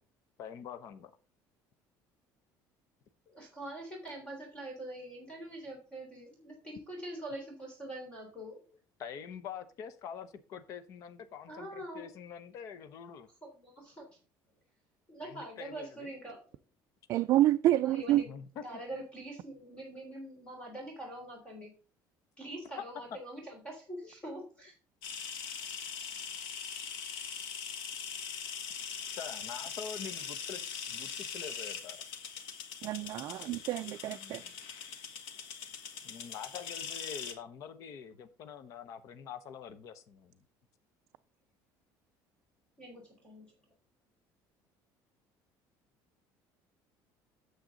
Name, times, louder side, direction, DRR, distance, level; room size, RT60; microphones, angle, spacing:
voice 1, 0.4-1.1 9.0-13.3 15.2-16.1 18.3-18.6 29.2-32.0 34.0-34.5 36.0-40.4, left 7 dB, 45° left, 0.8 m, -45 dB
voice 2, 3.3-8.6 11.5-12.1 13.4-14.2 15.1-16.4 17.7-21.7 22.4-24.7 42.8-43.5, right 1 dB, 15° left, 3.3 m, -44 dB
voice 3, 17.1-18.2 32.8-34.4, right 14 dB, 45° right, 0.4 m, -28 dB
sound 1, 25.0-37.3, left 7 dB, 90° left, 1.9 m, -41 dB
9.0 x 7.8 x 3.9 m
cardioid pair, 175°, 8 cm